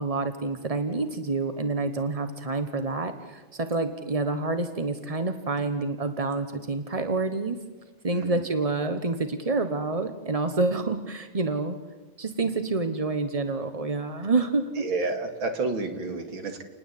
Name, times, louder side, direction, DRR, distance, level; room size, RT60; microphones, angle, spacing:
voice 1, 0.0-7.6 8.0-11.8 12.2-14.8, right 3 dB, 30° right, 8 dB, 0.7 m, -28 dB
voice 2, 8.1-8.4 14.2-14.3 14.8-16.6, right 3 dB, 65° right, 6 dB, 3.1 m, -30 dB
29.0 x 20.0 x 8.5 m, 1.2 s
omnidirectional pair, 2.3 m